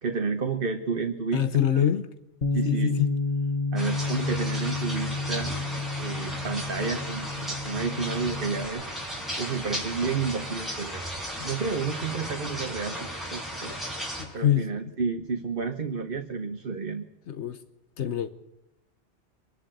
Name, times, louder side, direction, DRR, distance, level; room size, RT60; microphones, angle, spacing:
voice 1, 0.0-1.5 1.7-1.8 2.5-2.9 3.7-5.5 6.0-8.9 9.4-11.0 11.4-13.7 14.3-17.1, right 5 dB, 55° right, 5 dB, 1.3 m, -31 dB
voice 2, 1.3-2.1 2.6-3.1 11.4-11.5 14.2-14.9 17.3-17.6 18.0-18.3, left 9 dB, 80° left, 12 dB, 1.2 m, -25 dB
Bass guitar, 2.4-8.7, left 3 dB, 45° left, 1.5 m, -30 dB
sound 1, 3.8-14.2, equal, ahead, 5.8 m, -35 dB
25.0 x 11.5 x 9.0 m, 0.86 s
omnidirectional pair, 1.1 m